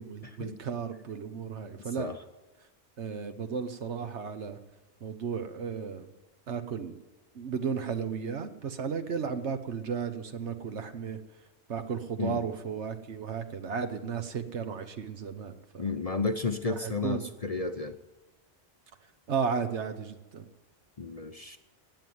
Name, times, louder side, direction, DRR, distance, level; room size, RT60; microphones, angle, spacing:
voice 1, 0.0-2.1 3.0-4.6 5.0-6.1 6.5-7.0 7.3-11.2 11.7-15.8 16.7-17.3 19.3-20.4, right 6 dB, 70° right, 9 dB, 1.3 m, -34 dB
voice 2, 1.8-2.2 12.2-12.4 15.8-18.0 21.0-21.6, left 4 dB, 35° left, 7 dB, 0.7 m, -32 dB
18.5 x 7.8 x 9.5 m, 1.1 s
omnidirectional pair, 1.2 m